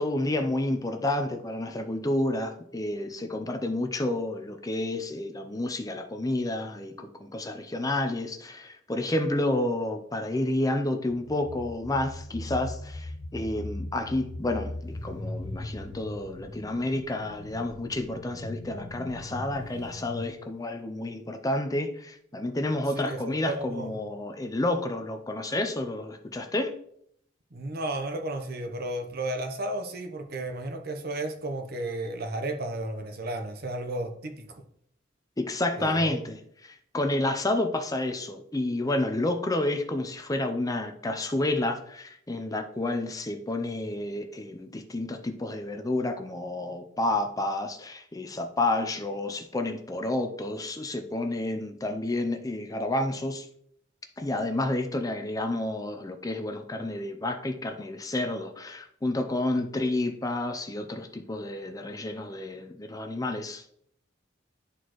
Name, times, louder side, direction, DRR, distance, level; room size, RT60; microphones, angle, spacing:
voice 1, 0.0-26.8 35.4-36.4 36.7-53.5 54.2-63.6, left 1 dB, 20° left, 0.5 m, -30 dB
sound 1, 11.1-20.3, left 1 dB, 65° left, 0.9 m, -39 dB
voice 2, 22.9-24.0 27.5-34.6 35.8-36.2, right 1 dB, 50° right, 0.8 m, -33 dB
11.0 x 4.2 x 3.1 m
head